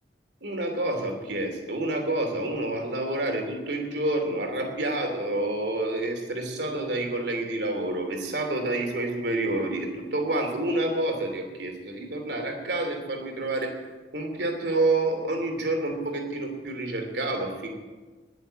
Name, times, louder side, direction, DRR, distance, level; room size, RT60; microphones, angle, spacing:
voice 1, 0.4-13.7 14.1-17.8, right 2 dB, 70° right, 3 dB, 2.9 m, -28 dB
21.0 x 7.0 x 8.7 m, 1.3 s
head